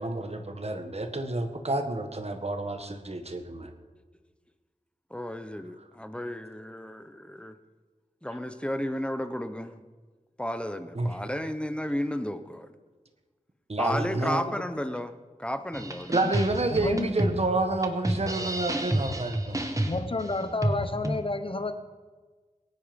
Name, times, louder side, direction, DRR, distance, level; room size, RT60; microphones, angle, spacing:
voice 1, 0.0-3.7 10.9-11.1 13.7-14.4 16.1-19.6, right 2 dB, 45° right, 6 dB, 1.6 m, -29 dB
voice 2, 5.1-7.5 8.2-9.8 10.4-12.7 13.8-16.2, equal, 5° left, 9 dB, 1.1 m, -33 dB
sound 1, 15.7-21.2, right 1 dB, 25° right, 1.6 m, -30 dB
voice 3, 16.7-17.1 19.8-21.7, left 2 dB, 40° left, 10 dB, 1.2 m, -30 dB
22.0 x 9.4 x 5.3 m, 1.4 s
wide cardioid pair, 60°, 14 cm